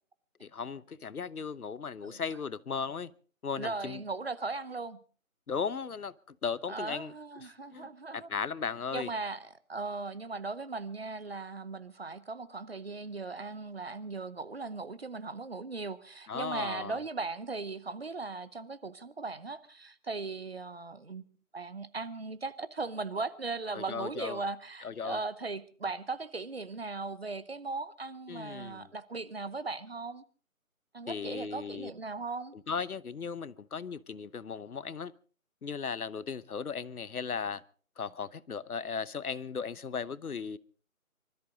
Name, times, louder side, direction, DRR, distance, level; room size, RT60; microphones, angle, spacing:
voice 1, 0.4-3.1 3.4-4.0 5.5-7.1 7.7-9.1 16.3-17.0 23.7-24.4 24.8-25.2 28.3-28.9 31.1-31.9 32.5-35.1 35.6-37.6 38.0-40.6, left 6 dB, 90° left, 1.0 m, -36 dB
voice 2, 3.6-5.0 6.7-8.3 8.9-21.3 21.5-30.2 30.9-32.5, right 3 dB, 45° right, 0.9 m, -38 dB
24.5 x 13.0 x 3.9 m
figure-of-eight pair, 170°, 43 cm